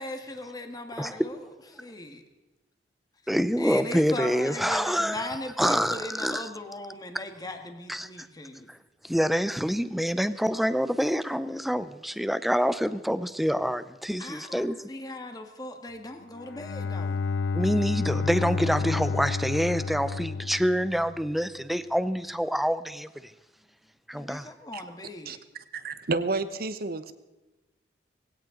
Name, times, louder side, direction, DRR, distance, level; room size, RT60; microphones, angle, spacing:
voice 1, 0.0-2.2 3.6-8.7 14.2-17.2 24.1-25.3, left 1 dB, 20° left, 5 dB, 1.7 m, -38 dB
voice 2, 3.3-6.5 7.9-8.1 8.7-8.8 9.0-14.8 17.5-23.3 24.1-24.5, equal, ahead, 13 dB, 0.6 m, -26 dB
Bowed string instrument, 16.3-21.3, left 4 dB, 90° left, 0.5 m, -30 dB
voice 3, 25.7-27.1, right 3 dB, 60° right, 11 dB, 1.0 m, -30 dB
20.0 x 17.0 x 3.9 m, 1.1 s
head